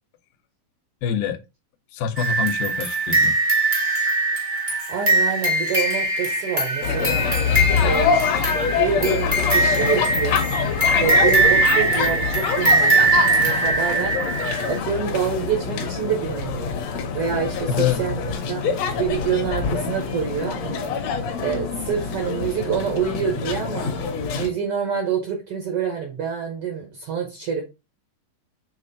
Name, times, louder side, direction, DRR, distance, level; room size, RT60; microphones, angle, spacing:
voice 1, 1.0-1.4 1.9-3.4 17.6-18.0, left 8 dB, 85° left, 2.4 m, -25 dB
sound 1, 2.2-14.8, right 2 dB, 45° right, 0.6 m, -21 dB
voice 2, 4.9-7.3 7.8-8.4 8.8-10.5 11.0-14.2 14.7-16.7 17.1-18.2 18.5-18.6 19.0-20.9 21.4-23.9 24.4-27.6, right 7 dB, 90° right, 1.2 m, -26 dB
sound 2, 6.8-24.5, left 6 dB, 70° left, 1.6 m, -25 dB
6.2 x 3.3 x 2.6 m
omnidirectional pair, 4.0 m